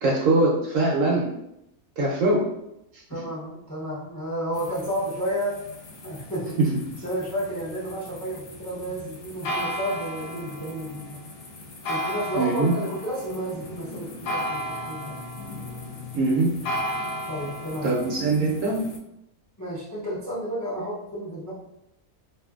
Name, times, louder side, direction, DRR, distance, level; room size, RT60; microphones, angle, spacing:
voice 1, 0.0-1.3 2.0-2.4 6.6-6.7 12.4-12.7 16.1-16.5 17.8-18.8, right 3 dB, 70° right, -3 dB, 0.8 m, -22 dB
voice 2, 3.1-5.6 6.0-6.6 7.0-11.2 11.9-15.2 17.3-18.0 19.6-21.5, equal, 20° left, -8 dB, 0.4 m, -31 dB
sound 1, 4.5-19.0, equal, 70° left, 1.0 m, -35 dB
2.6 x 2.5 x 2.4 m, 0.83 s
omnidirectional pair, 1.6 m